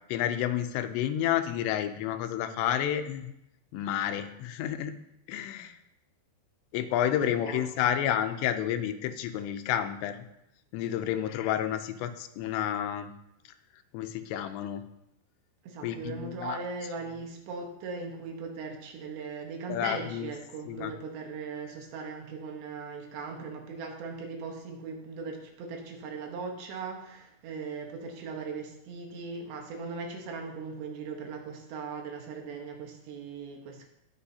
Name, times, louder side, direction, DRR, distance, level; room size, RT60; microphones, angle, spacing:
voice 1, 0.1-3.3 3.7-4.9 5.3-5.8 6.7-10.2 10.7-13.1 13.9-14.8 15.8-16.6 19.7-20.3 20.7-20.9, left 10 dB, 85° left, 8 dB, 2.9 m, -30 dB
voice 2, 7.2-7.6 15.6-33.9, right 4 dB, 85° right, 2 dB, 3.5 m, -39 dB
17.5 x 6.1 x 2.8 m, 0.82 s
omnidirectional pair, 4.9 m